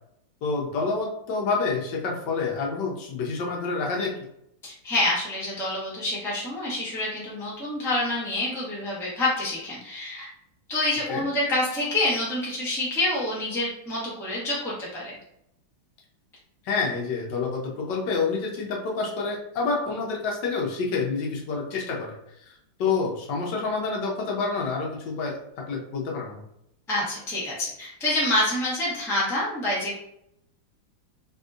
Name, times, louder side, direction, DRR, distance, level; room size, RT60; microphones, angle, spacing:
voice 1, 0.4-4.1 11.1-11.2 16.6-22.1 22.5-25.4 25.7-26.4, left 4 dB, 70° left, -1 dB, 1.2 m, -28 dB
voice 2, 4.6-10.3 10.7-15.1 26.9-30.0, left 1 dB, 5° left, -6 dB, 0.4 m, -27 dB
3.5 x 2.7 x 2.4 m, 0.78 s
omnidirectional pair, 2.2 m